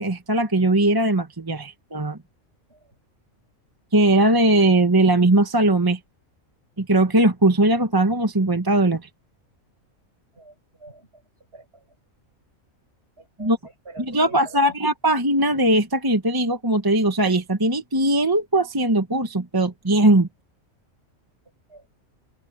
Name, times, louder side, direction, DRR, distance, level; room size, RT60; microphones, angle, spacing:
voice 1, 0.0-2.2 3.9-6.0 6.8-9.0 13.4-13.6 14.0-20.3, right 1 dB, 15° right, 1.1 m, -19 dB
voice 2, 10.3-11.2 11.5-11.8 13.2-13.5 13.9-14.8 21.7-21.9, right 2 dB, 50° right, 7.6 m, -45 dB
open air
omnidirectional pair, 1.4 m